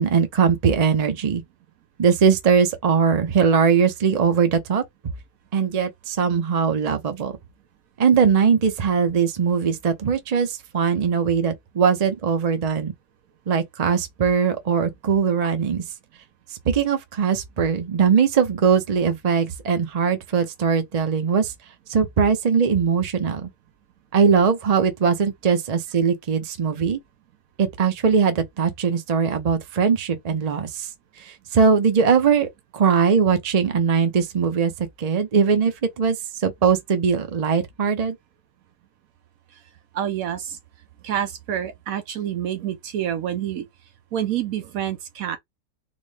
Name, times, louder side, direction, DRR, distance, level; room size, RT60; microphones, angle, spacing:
voice 1, 0.0-1.4 2.0-4.8 5.5-7.3 8.0-12.9 13.5-15.8 16.6-21.5 21.9-23.5 24.1-27.0 27.6-30.9 31.2-38.2, right 6 dB, 45° right, 0.5 m, -20 dB
voice 2, 39.9-40.6 41.0-43.7 44.1-45.4, right 10 dB, 70° right, 1.0 m, -27 dB
4.1 x 2.1 x 3.2 m
omnidirectional pair, 1.7 m